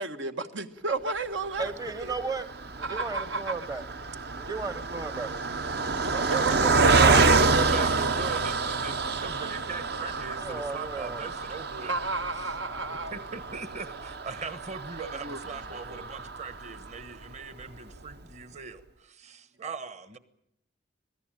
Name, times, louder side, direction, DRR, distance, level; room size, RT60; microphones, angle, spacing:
voice 1, 0.0-2.2 2.8-3.6 6.0-7.4 11.9-13.1 15.0-16.0, right 3 dB, 80° right, 1.7 m, -33 dB
voice 2, 1.6-2.5 2.8-3.8 4.3-5.3 10.3-11.3, right 4 dB, 20° right, 0.9 m, -35 dB
Car passing by, 1.6-17.1 17.6-17.7 17.9-18.1, right 4 dB, 55° right, 1.0 m, -28 dB
voice 3, 7.0-11.9 13.1-18.8 19.1-20.2, right 5 dB, 35° right, 1.3 m, -39 dB
26.0 x 17.5 x 9.0 m
head